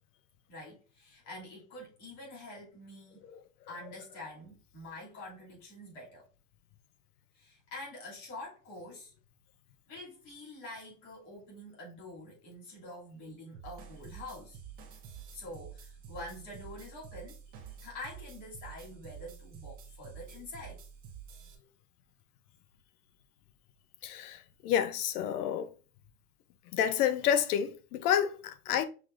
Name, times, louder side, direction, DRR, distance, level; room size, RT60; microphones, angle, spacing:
voice 1, 0.5-3.2 3.7-6.3 7.3-9.1 9.9-14.6 15.3-17.4 17.8-20.8, left 1 dB, 40° left, 2.5 m, -46 dB
sound 1, 13.5-21.6, right 8 dB, 20° right, 0.5 m, -49 dB
voice 2, 24.0-25.7 26.7-28.9, left 9 dB, 70° left, 0.7 m, -29 dB
5.8 x 3.1 x 2.4 m
supercardioid pair, 165°, 46 cm